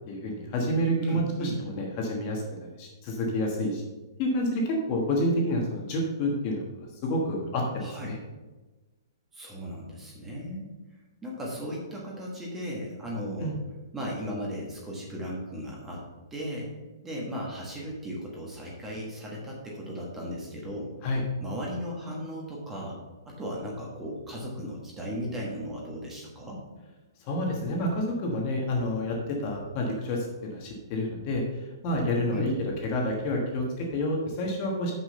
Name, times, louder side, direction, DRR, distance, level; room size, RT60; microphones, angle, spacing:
voice 1, 0.1-3.8 4.2-6.7 7.0-8.2 13.4-13.6 21.0-21.2 27.2-34.9, left 1 dB, 25° left, 0 dB, 1.3 m, -29 dB
voice 2, 0.9-1.6 7.8-8.2 9.3-10.7 11.2-13.5 13.9-16.7 17.0-20.9 21.4-23.0 23.2-26.6 32.3-32.5, equal, 10° right, -3 dB, 1.3 m, -36 dB
6.2 x 6.1 x 6.7 m, 1.2 s
hypercardioid pair, 175°, 2 cm